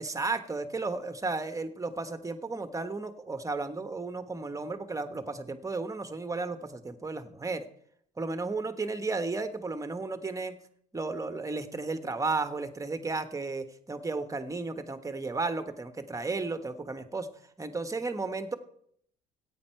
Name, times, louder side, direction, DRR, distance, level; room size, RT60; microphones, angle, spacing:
voice 1, 0.0-7.6 8.2-10.6 10.9-17.3 17.6-18.6, right 3 dB, 15° right, 9 dB, 1.2 m, -34 dB
13.5 x 9.0 x 4.5 m, 0.68 s
supercardioid pair, 75°, 19 cm